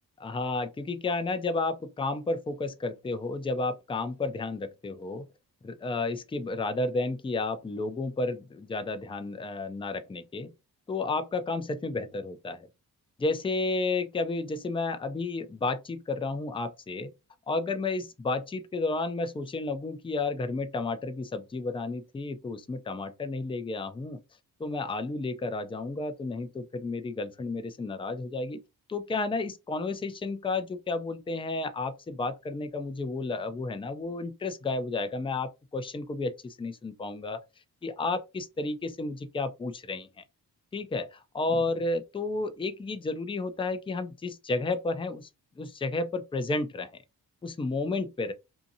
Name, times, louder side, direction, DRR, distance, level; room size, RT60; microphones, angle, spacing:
voice 1, 0.2-5.3 5.6-10.5 10.9-12.7 13.2-17.1 17.5-24.2 24.6-28.6 28.9-37.4 37.8-40.2 40.7-41.1 41.3-45.3 45.6-46.9 47.4-48.3, left 3 dB, 15° left, 0.4 m, -32 dB
2.7 x 2.6 x 2.6 m
cardioid pair, 60°, 41 cm